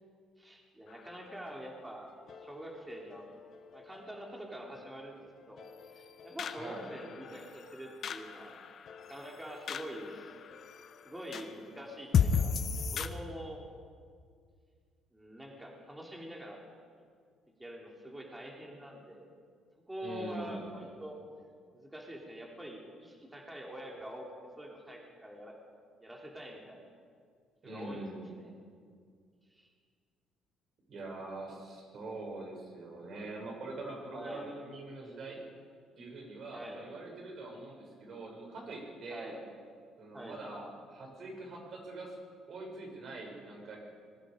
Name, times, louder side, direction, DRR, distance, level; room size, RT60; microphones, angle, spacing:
voice 1, 0.4-2.1 2.4-3.3 3.7-5.6 5.9-8.6 9.0-10.3 11.0-12.5 12.9-13.6 15.1-16.6 17.6-19.2 19.9-21.2 21.7-24.3 24.6-25.5 26.0-26.8 27.6-28.5 29.5-29.7 31.2-31.6 34.1-34.5 36.5-36.9 39.1-39.4 40.1-40.4, equal, 10° right, -1 dB, 3.3 m, -45 dB
sound 1, 0.9-13.1, left 6 dB, 50° left, 1.2 m, -37 dB
voice 2, 6.5-6.9 20.0-20.7 27.6-28.3 30.9-35.4 36.0-39.3 40.0-42.2 42.5-43.8, right 2 dB, 50° right, 0 dB, 7.2 m, -43 dB
25.5 x 21.5 x 5.3 m, 2.1 s
cardioid pair, 135°, 0 cm